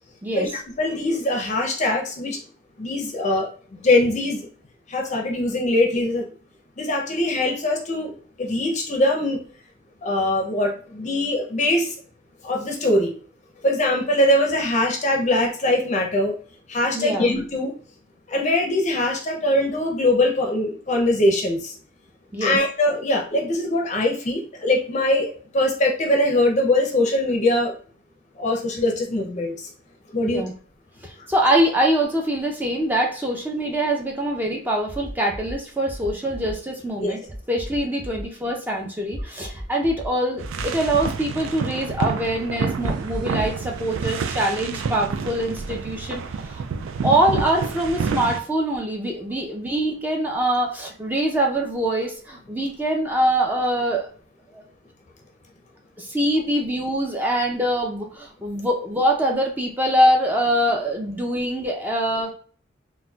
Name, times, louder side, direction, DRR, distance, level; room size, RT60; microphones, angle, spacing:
voice 1, 0.8-2.4 2.8-4.5 4.9-6.2 6.8-8.1 8.4-9.4 10.0-11.9 12.4-13.1 13.6-16.3 16.7-17.7 18.3-21.7 22.4-27.7 28.4-29.6 30.1-30.5 37.0-37.1, left 1 dB, 35° left, 1 dB, 0.5 m, -22 dB
voice 2, 16.9-17.3 22.3-22.6 30.2-30.5 31.3-37.2 37.5-46.2 46.5-46.6 47.0-54.1 56.0-62.3, right 1 dB, 10° right, 0 dB, 0.5 m, -23 dB
sound 1, 34.9-35.5 35.9-36.5 37.3-38.2 39.1-40.1 40.4-41.1 42.8-43.6, equal, 45° right, 0.9 m, -34 dB
sound 2, 40.4-48.4, right 5 dB, 85° right, 0.3 m, -29 dB
4.0 x 2.2 x 2.3 m, 0.43 s
head